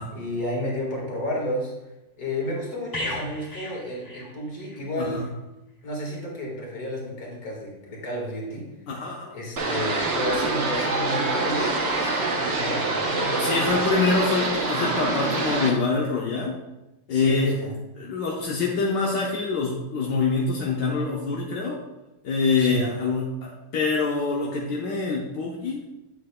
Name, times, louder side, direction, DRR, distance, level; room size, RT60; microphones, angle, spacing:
voice 1, 0.1-1.7 2.1-5.2 5.8-8.7 9.3-13.8 17.1-17.7 22.6-22.9, left 1 dB, 55° left, -2 dB, 2.3 m, -31 dB
sound 1, 2.9-4.8 5.1-5.3, left 1 dB, 15° left, 0.7 m, -35 dB
voice 2, 8.9-9.3 13.4-16.6 17.1-17.6 18.0-21.8 22.2-25.8, left 4 dB, 85° left, -3 dB, 1.7 m, -25 dB
sound 2, 9.6-15.7, right 3 dB, 45° right, 1.1 m, -25 dB
8.3 x 8.2 x 2.3 m, 0.96 s
omnidirectional pair, 1.9 m